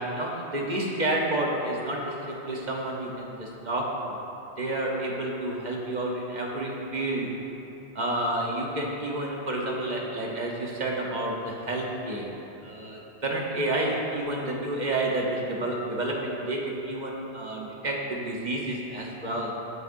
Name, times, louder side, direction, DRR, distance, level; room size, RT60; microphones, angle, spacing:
voice 1, 0.0-4.2 4.6-7.3 7.9-12.3 12.6-19.5, right 1 dB, 40° right, -2 dB, 1.1 m, -30 dB
12.0 x 8.0 x 2.6 m, 2.9 s
omnidirectional pair, 1.2 m